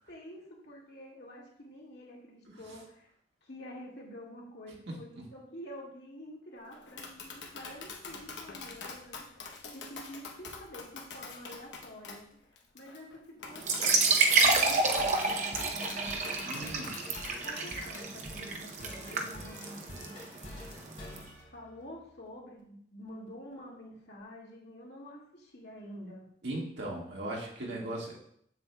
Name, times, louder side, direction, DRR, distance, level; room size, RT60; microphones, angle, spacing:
voice 1, 0.1-3.1 3.4-12.2 12.5-16.7 17.4-20.1 21.5-26.3, equal, 70° left, -3 dB, 2.0 m, -48 dB
Tap, 6.7-18.0, left 4 dB, 90° left, 0.9 m, -46 dB
sound 1, 13.6-22.2, left 1 dB, 45° left, 2.1 m, -49 dB
sound 2, 13.6-21.2, right 3 dB, 45° right, 0.7 m, -29 dB
voice 2, 16.4-17.0 19.1-19.2 26.4-28.2, right 1 dB, 85° right, -2 dB, 1.7 m, -38 dB
7.5 x 7.3 x 2.2 m, 0.68 s
head